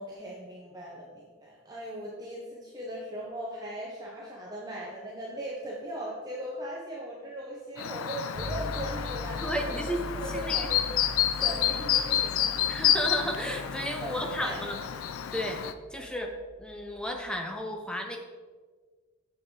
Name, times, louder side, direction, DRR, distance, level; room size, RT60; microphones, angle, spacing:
voice 1, 0.0-10.9 11.3-12.6 14.0-14.6 15.9-16.0, equal, 20° right, -4 dB, 0.9 m, -39 dB
Chirp tweet, 7.8-15.7, left 10 dB, 90° left, 0.4 m, -29 dB
sound 1, 8.3-17.3, left 1 dB, 40° right, 1.7 m, -42 dB
voice 2, 9.4-10.7 11.5-11.6 12.7-14.8 15.3-15.7 15.9-16.3 16.6-18.2, equal, 5° left, 3 dB, 0.6 m, -33 dB
7.5 x 6.0 x 3.8 m, 1.5 s
head